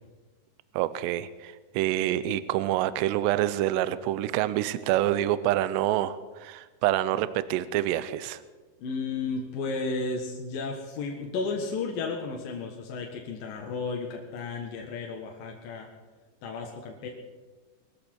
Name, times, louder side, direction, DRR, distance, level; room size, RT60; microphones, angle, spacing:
voice 1, 0.7-8.4, right 13 dB, 80° right, 15 dB, 2.6 m, -27 dB
voice 2, 8.8-15.9 16.4-17.1, left 4 dB, 65° left, 0 dB, 2.6 m, -33 dB
22.0 x 14.0 x 4.5 m, 1.3 s
omnidirectional pair, 5.4 m